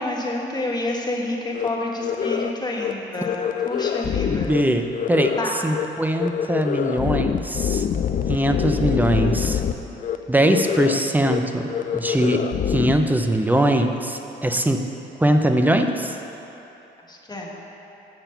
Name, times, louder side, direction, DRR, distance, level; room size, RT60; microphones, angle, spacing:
voice 1, 0.0-4.5 5.4-5.5 8.3-8.5 17.1-17.6, left 2 dB, 20° left, -1 dB, 1.4 m, -29 dB
sound 1, 1.5-1.7 2.0-2.5 2.8-2.9 3.2-4.6 4.9-5.4 5.7-5.8 6.1-9.7 10.0-10.2 10.5-11.0 11.2-11.4 11.7-12.9, left 8 dB, 40° left, 0.4 m, -25 dB
voice 2, 4.3-5.3 5.6-7.9 8.3-9.6 10.3-11.7 11.9-14.9 15.2-16.2, right 1 dB, 10° right, 5 dB, 0.6 m, -21 dB
7.5 x 7.0 x 5.6 m, 3.0 s
cardioid pair, 90°, 20 cm